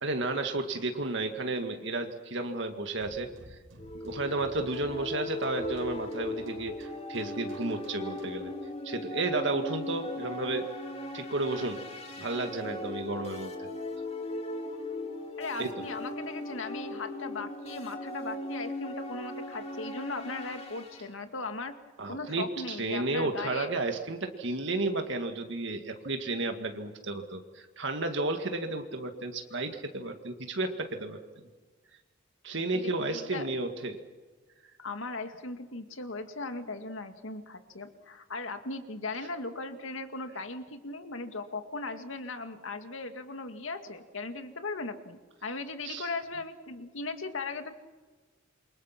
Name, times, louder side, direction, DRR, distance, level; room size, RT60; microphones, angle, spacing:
voice 1, 0.0-3.6 4.0-8.5 8.8-10.7 11.1-11.8 12.2-13.7 15.6-15.7 22.0-31.2 32.4-34.0 45.8-46.1, right 2 dB, 60° right, 5 dB, 2.0 m, -32 dB
sound 1, 3.0-8.5, right 1 dB, 80° right, 4.3 m, -53 dB
sound 2, 3.8-21.0, left 1 dB, 30° left, 3.1 m, -38 dB
voice 2, 15.4-21.8 22.1-23.7 32.7-33.5 34.8-47.7, left 3 dB, 75° left, 7 dB, 2.1 m, -38 dB
28.0 x 24.5 x 6.0 m, 1.3 s
head